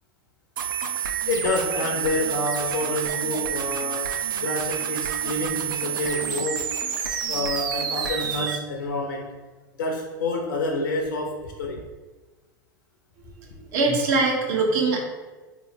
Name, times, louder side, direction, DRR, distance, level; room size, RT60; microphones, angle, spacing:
sound 1, 0.6-8.6, right 7 dB, 75° right, 0.5 m, -28 dB
voice 1, 1.3-6.7 7.3-9.4 9.8-11.9, left 2 dB, 75° left, 1 dB, 0.5 m, -28 dB
voice 2, 13.5-15.0, right 3 dB, 60° right, 0 dB, 1.0 m, -22 dB
4.1 x 3.0 x 2.7 m, 1.3 s
hypercardioid pair, 95°, 11 cm